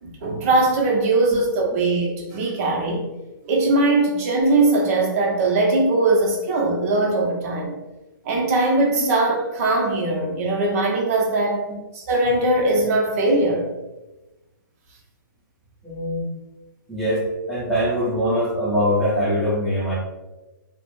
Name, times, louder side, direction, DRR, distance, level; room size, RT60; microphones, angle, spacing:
voice 1, 0.0-3.0 3.5-7.7 8.2-11.7 11.9-13.7, right 2 dB, 45° right, 0 dB, 0.7 m, -20 dB
voice 2, 15.8-16.2 16.9-20.0, equal, ahead, -8 dB, 0.7 m, -22 dB
2.4 x 2.0 x 3.1 m, 1.1 s
hypercardioid pair, 140°, 11 cm